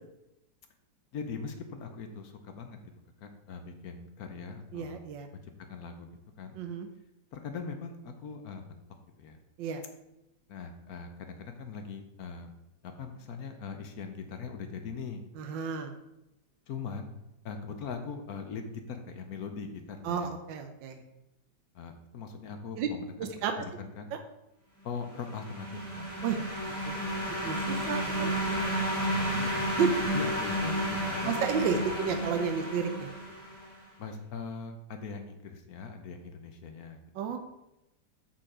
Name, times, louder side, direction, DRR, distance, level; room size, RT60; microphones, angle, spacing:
voice 1, 1.1-2.9 3.2-5.0 5.3-5.4 5.7-6.1 6.4-6.6 7.3-8.8 9.2-9.4 10.5-12.5 12.8-15.2 16.7-17.1 17.4-20.3 21.7-24.1 24.8-26.0 29.1-29.7 30.1-31.3 31.7-32.1 34.0-37.0 37.3-37.4, left 5 dB, 60° left, 6 dB, 1.1 m, -41 dB
voice 2, 4.7-5.3 6.5-6.9 9.6-9.8 15.4-15.9 20.0-21.0 22.8-22.9 23.2-23.5 24.1-24.2 26.2-26.4 26.6-27.0 27.4-28.7 29.8-29.9 31.3-33.1 37.1-37.4, right 7 dB, 75° right, 5 dB, 1.4 m, -32 dB
sound 1, 25.1-33.7, equal, 25° right, 3.0 m, -32 dB
6.7 x 5.7 x 4.9 m, 0.90 s
omnidirectional pair, 2.1 m